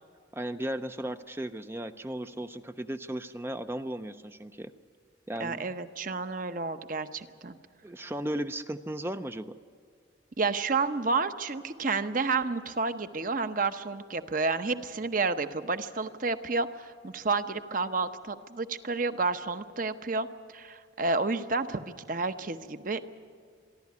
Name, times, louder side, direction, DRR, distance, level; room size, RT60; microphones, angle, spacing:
voice 1, 0.3-4.7 5.3-5.6 7.8-9.6, right 1 dB, 10° right, 9 dB, 0.4 m, -35 dB
voice 2, 5.4-7.6 10.4-20.3 20.5-23.0, right 4 dB, 45° right, 10 dB, 0.8 m, -30 dB
25.5 x 12.0 x 9.5 m, 2.2 s
head